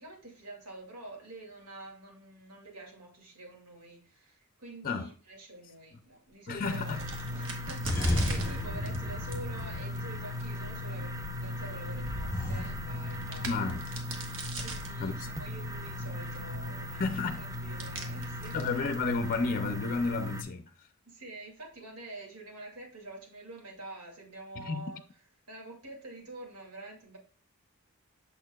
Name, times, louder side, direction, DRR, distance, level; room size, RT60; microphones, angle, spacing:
voice 1, 0.0-13.8 14.6-18.6 21.1-25.0 25.5-27.2, right 2 dB, 80° right, 2.4 m, -47 dB
voice 2, 6.5-7.0 13.5-13.9 15.0-15.1 17.0-17.4 18.5-20.7 24.6-24.9, left 4 dB, 40° left, 0.5 m, -31 dB
Crack, 6.5-19.8, right 2 dB, 60° right, 1.3 m, -45 dB
sound 1, 6.6-20.4, left 1 dB, 15° right, 0.6 m, -38 dB
sound 2, 7.8-10.5 12.0-13.7, left 1 dB, 15° left, 1.0 m, -34 dB
6.8 x 6.4 x 2.3 m
head